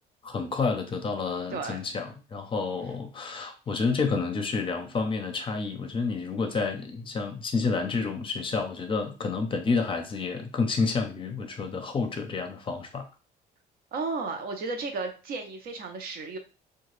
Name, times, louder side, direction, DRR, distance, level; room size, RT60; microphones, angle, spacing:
voice 1, 0.2-13.1, left 4 dB, 30° left, 6 dB, 0.6 m, -29 dB
voice 2, 1.5-1.8 13.9-16.4, right 3 dB, 65° right, 4 dB, 0.7 m, -33 dB
2.8 x 2.3 x 3.1 m, 0.33 s
cardioid pair, 110°, 17 cm